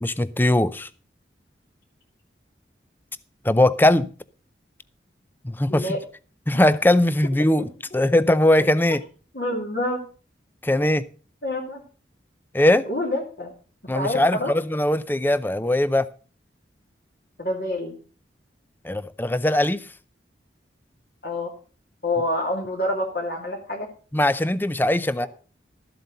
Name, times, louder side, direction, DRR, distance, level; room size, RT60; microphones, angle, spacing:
voice 1, 0.0-0.9 3.4-4.1 5.4-6.0 6.5-9.0 10.6-11.0 12.5-12.9 13.9-16.1 18.8-19.8 24.1-25.3, left 1 dB, 10° left, 0.5 m, -20 dB
voice 2, 5.7-6.0 7.9-8.0 9.3-10.0 11.4-11.8 12.9-13.5 13.9-14.5 17.4-17.9 21.2-21.5 22.0-23.9 25.2-25.3, left 1 dB, 55° left, 2.7 m, -27 dB
13.0 x 7.8 x 5.3 m
head